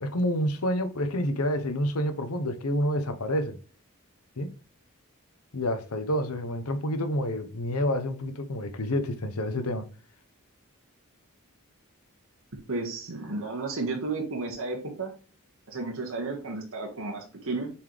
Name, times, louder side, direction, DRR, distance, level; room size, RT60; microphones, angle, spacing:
voice 1, 0.0-3.6 4.4-4.5 5.5-9.9, equal, 75° left, 1.0 m, -28 dB
voice 2, 12.7-15.1 15.7-17.7, right 3 dB, 65° right, 1.7 m, -33 dB
7.1 x 4.4 x 3.3 m
head